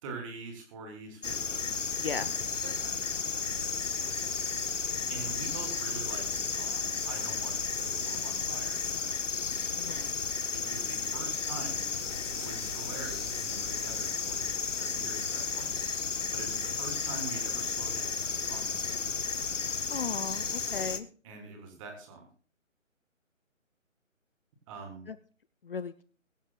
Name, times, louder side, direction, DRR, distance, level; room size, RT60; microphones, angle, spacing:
voice 1, 0.0-1.9 2.1-3.2 5.1-8.8 10.5-11.9 12.4-15.7 16.3-19.2 21.2-22.3 24.7-25.1, right 3 dB, 25° right, 3 dB, 3.5 m, -44 dB
sound 1, 1.2-21.0, left 5 dB, 65° left, 1.3 m, -33 dB
voice 2, 2.0-2.3 9.8-10.1 19.9-21.1 25.1-25.2 25.6-26.0, left 5 dB, 45° left, 13 dB, 0.7 m, -36 dB
22.5 x 8.7 x 2.4 m, 0.41 s
figure-of-eight pair, 150°, 40 cm